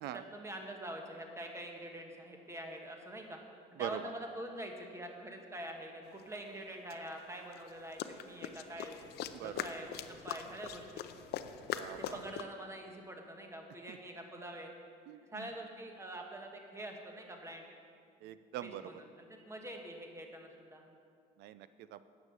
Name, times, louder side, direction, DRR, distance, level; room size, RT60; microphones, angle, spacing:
voice 1, 0.0-3.4 3.8-9.0 9.4-10.9 12.0-14.7 15.3-17.7 18.6-20.8, right 1 dB, 15° right, 2 dB, 1.4 m, -45 dB
voice 2, 3.8-4.1 9.3-9.6 11.7-12.2 13.9-14.0 15.1-15.5 18.2-19.0 21.4-22.0, right 12 dB, 80° right, 14 dB, 0.5 m, -43 dB
sound 1, 6.2-6.3 6.9-12.4, left 10 dB, 70° left, 0.6 m, -42 dB
9.5 x 7.2 x 6.5 m, 2.3 s
cardioid pair, 110°, 17 cm